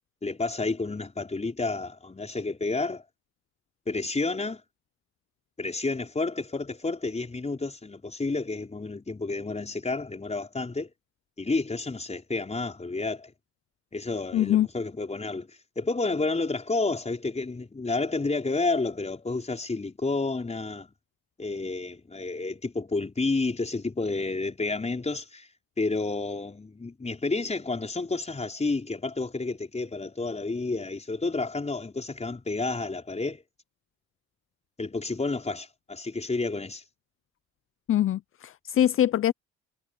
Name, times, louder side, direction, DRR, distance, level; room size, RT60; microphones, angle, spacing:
voice 1, 0.2-3.0 3.9-4.6 5.6-10.9 11.4-13.3 13.9-20.9 21.4-25.5 25.8-33.4 34.8-36.8, left 3 dB, 20° left, 5.3 m, -30 dB
voice 2, 14.3-14.7 37.9-39.3, left 11 dB, 45° left, 0.5 m, -23 dB
cardioid pair, 90°, 30 cm